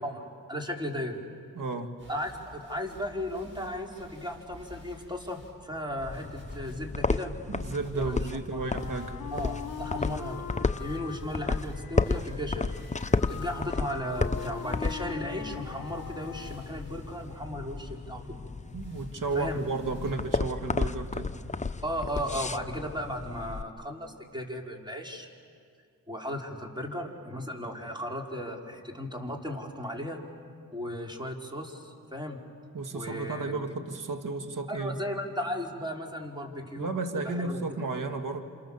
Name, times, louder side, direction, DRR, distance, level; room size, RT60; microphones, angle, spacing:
voice 1, 0.0-1.2 2.1-7.3 7.9-8.2 8.5-8.6 9.3-10.4 10.8-12.7 13.0-18.4 19.3-19.6 21.8-25.3 26.1-30.2 30.7-32.4 32.9-33.6 34.7-36.9 37.2-37.7, equal, 10° right, 1 dB, 4.6 m, -36 dB
voice 2, 1.6-1.9 7.5-9.2 18.7-21.3 32.7-35.0 36.8-38.4, right 3 dB, 55° right, 7 dB, 2.0 m, -33 dB
sound 1, 2.0-20.8, left 1 dB, 30° right, 6.7 m, -52 dB
sound 2, 6.0-23.6, left 3 dB, 20° left, 0.9 m, -33 dB
Wind instrument woodwind instrument, 8.6-16.8, left 8 dB, 55° left, 1.4 m, -42 dB
28.5 x 27.5 x 7.3 m, 2.2 s
cardioid pair, 55°, 37 cm